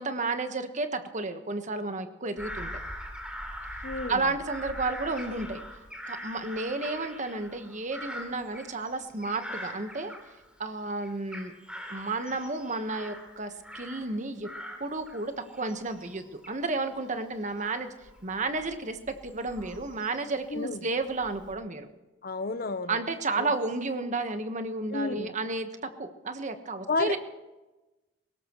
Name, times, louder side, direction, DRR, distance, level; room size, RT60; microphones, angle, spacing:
voice 1, 0.0-2.7 4.1-5.6 6.1-10.1 10.6-11.5 11.9-14.5 14.8-17.9 18.2-21.9 22.9-27.2, right 3 dB, 40° right, 7 dB, 1.3 m, -32 dB
Bird vocalization bird call bird song / Crow, 2.4-10.7 11.0-14.2 14.4-20.5 21.0-21.5, equal, 5° right, 3.2 m, -43 dB
voice 2, 3.8-4.3 20.5-20.9 22.2-23.0 23.4-23.5 24.9-25.3 26.9-27.2, left 3 dB, 50° left, 12 dB, 0.9 m, -31 dB
21.0 x 18.0 x 3.1 m, 1.1 s
head